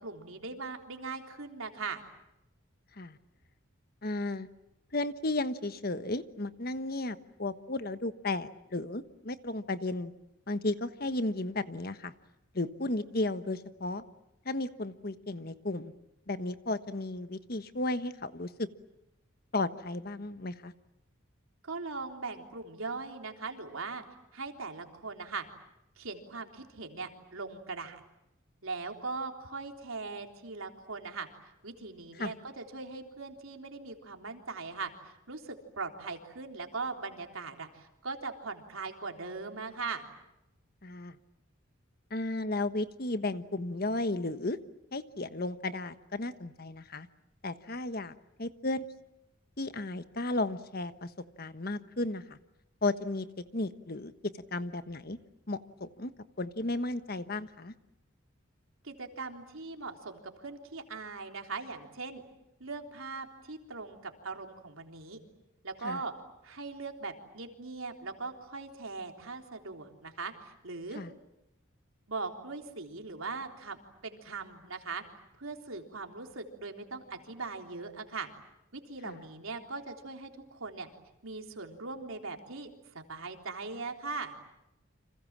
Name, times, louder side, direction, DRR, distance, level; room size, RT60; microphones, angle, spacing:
voice 1, 0.0-2.0 21.6-24.0 24.3-25.4 26.0-28.0 28.6-31.3 31.6-40.1 58.8-62.2 62.6-65.2 65.6-66.1 66.4-71.0 72.1-73.8 74.0-75.0 75.4-78.3 78.7-80.9 81.2-84.3, right 4 dB, 90° right, 4 dB, 3.6 m, -40 dB
voice 2, 4.0-4.5 4.9-10.1 10.5-12.1 12.5-14.0 14.4-15.9 16.3-18.7 19.5-20.7 32.2-32.3 40.8-41.1 42.1-44.6 44.9-47.1 47.4-48.1 48.4-48.8 49.6-51.1 51.4-52.4 52.8-53.3 53.5-54.1 54.5-55.2 55.5-56.1 56.4-57.7 65.8-66.0 70.9-71.1 79.0-79.2, left 2 dB, 45° left, 11 dB, 1.3 m, -34 dB
30.0 x 26.5 x 7.4 m, 0.90 s
head